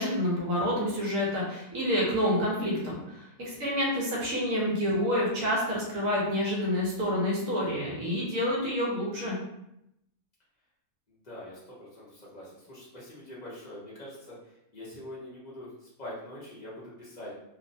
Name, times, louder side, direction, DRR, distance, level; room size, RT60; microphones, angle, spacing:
voice 1, 0.0-9.4, left 1 dB, 65° right, -4 dB, 1.1 m, -28 dB
voice 2, 3.4-3.8 11.1-17.3, left 1 dB, 35° left, -7 dB, 0.8 m, -44 dB
3.1 x 2.0 x 2.6 m, 0.82 s
omnidirectional pair, 1.6 m